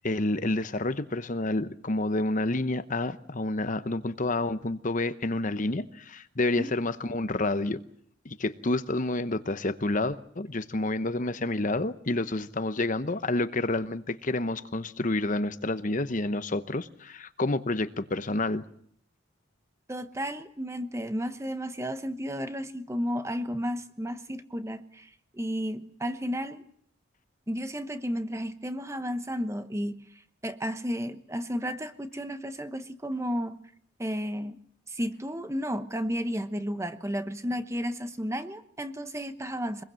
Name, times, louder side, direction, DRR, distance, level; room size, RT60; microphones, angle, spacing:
voice 1, 0.0-7.8 8.2-18.6, left 2 dB, 40° left, 12 dB, 0.9 m, -29 dB
voice 2, 19.9-26.6 27.5-30.0 30.4-33.6 34.0-34.6 34.9-39.8, equal, 15° right, 10 dB, 1.0 m, -33 dB
24.0 x 21.5 x 7.6 m, 0.65 s
head